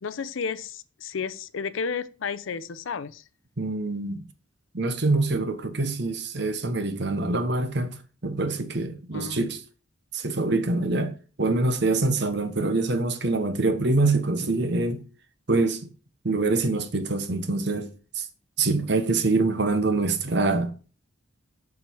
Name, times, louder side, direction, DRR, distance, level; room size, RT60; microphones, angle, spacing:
voice 1, 0.0-3.2 9.1-9.4, left 5 dB, 75° left, 0.5 m, -32 dB
voice 2, 3.6-4.2 4.7-8.0 8.2-9.6 10.1-15.0 15.5-15.8 16.2-18.3 18.6-20.7, right 3 dB, 55° right, 1.0 m, -25 dB
7.2 x 6.2 x 4.5 m
head